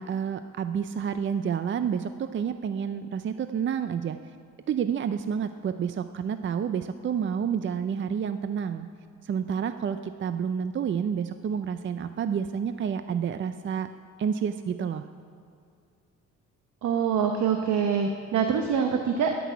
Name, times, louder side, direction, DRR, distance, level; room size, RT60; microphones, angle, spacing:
voice 1, 0.0-4.2 4.7-8.9 9.2-13.9 14.2-15.0, right 7 dB, 40° right, 10 dB, 0.5 m, -29 dB
voice 2, 16.8-19.4, right 7 dB, 70° right, 3 dB, 1.0 m, -25 dB
14.0 x 6.1 x 9.5 m, 2.4 s
cardioid pair, 90°, 30 cm